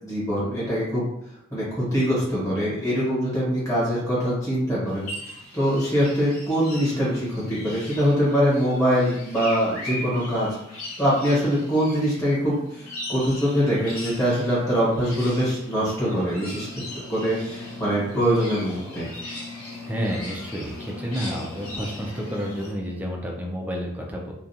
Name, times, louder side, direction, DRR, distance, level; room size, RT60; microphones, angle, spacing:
voice 1, 0.0-1.0 1.5-5.1 5.5-10.5 11.0-16.7 16.9-19.1, equal, 15° left, -8 dB, 1.1 m, -23 dB
sound 1, 4.9-22.7, left 1 dB, 85° left, 1.2 m, -39 dB
voice 2, 19.9-24.3, equal, 10° right, 0 dB, 0.3 m, -30 dB
2.4 x 2.1 x 2.7 m, 0.81 s
head